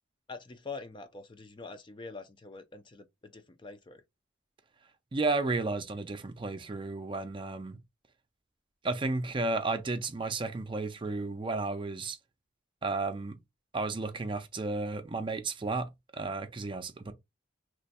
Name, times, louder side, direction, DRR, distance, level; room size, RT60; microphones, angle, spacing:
voice 1, 0.3-4.0, left 4 dB, 25° left, 0.4 m, -45 dB
voice 2, 5.1-7.8 8.8-12.2 12.8-13.4 13.7-17.1, right 3 dB, 25° right, 0.5 m, -33 dB
3.0 x 2.2 x 4.1 m
head